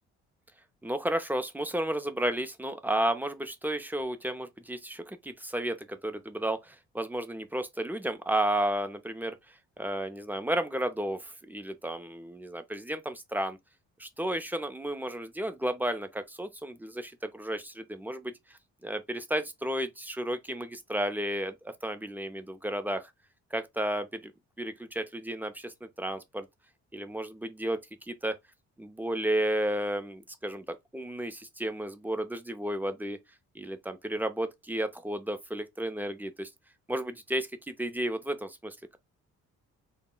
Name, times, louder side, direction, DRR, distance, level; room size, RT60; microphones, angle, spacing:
voice 1, 0.8-9.4 9.8-13.6 14.0-18.3 18.8-23.1 23.5-24.3 24.6-26.5 26.9-28.4 28.8-33.2 33.6-36.5 36.9-39.0, right 1 dB, 5° right, 0.4 m, -32 dB
2.1 x 2.1 x 3.7 m
cardioid pair, 90°, 30 cm